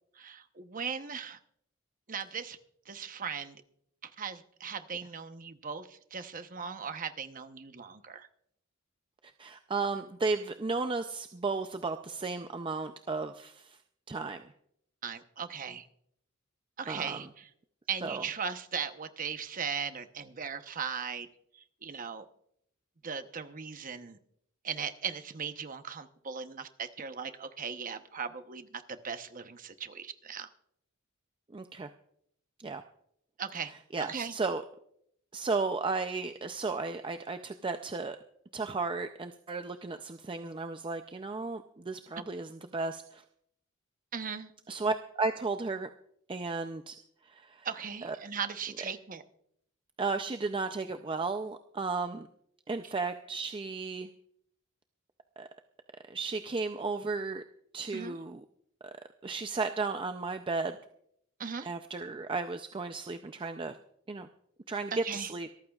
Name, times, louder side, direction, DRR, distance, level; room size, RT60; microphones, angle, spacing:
voice 1, 0.2-1.4 2.1-2.6 2.9-3.6 4.0-8.3 15.0-15.9 16.8-17.5 17.9-21.3 21.5-22.3 23.0-24.2 24.6-30.5 33.4-33.7 34.0-34.3 44.1-44.5 47.6-49.2 57.9-58.2 61.4-61.7 64.9-65.3, right 6 dB, 40° right, 9 dB, 0.9 m, -38 dB
voice 2, 9.2-13.8 14.1-14.5 16.9-17.3 18.0-18.2 31.5-31.9 32.6-32.8 33.9-34.6 35.3-38.2 38.5-43.2 44.7-45.9 46.3-47.0 47.2-47.7 48.0-48.2 50.0-52.3 52.7-54.1 55.4-55.5 56.0-57.4 57.7-58.4 58.8-58.9 59.2-60.8 61.6-63.8 64.1-64.3 64.7-65.5, right 3 dB, 25° right, 7 dB, 0.5 m, -34 dB
26.0 x 14.0 x 2.4 m, 0.71 s
head